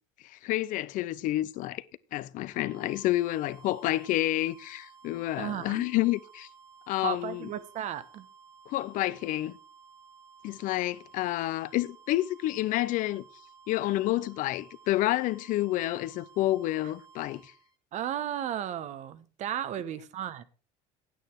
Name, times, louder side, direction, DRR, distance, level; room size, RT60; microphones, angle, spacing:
voice 1, 0.2-1.8 2.1-6.5 6.9-7.5 8.7-9.5 10.4-13.2 13.7-17.5, left 16 dB, 60° left, 0.6 m, -29 dB
sound 1, 2.5-17.8, right 6 dB, 25° right, 1.3 m, -55 dB
voice 2, 5.4-5.9 7.0-8.3 17.9-20.4, right 10 dB, 50° right, 1.0 m, -34 dB
9.2 x 8.5 x 4.7 m
supercardioid pair, 110°, 15 cm